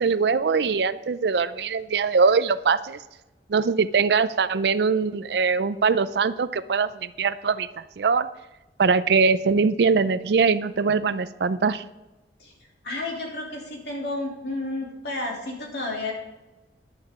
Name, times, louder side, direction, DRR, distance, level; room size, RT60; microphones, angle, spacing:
voice 1, 0.0-3.0 3.5-7.7 8.0-8.3 8.8-11.8, right 5 dB, 70° right, 15 dB, 0.4 m, -22 dB
voice 2, 12.8-16.1, left 2 dB, 65° left, -2 dB, 2.9 m, -31 dB
11.0 x 10.5 x 3.7 m, 1.1 s
head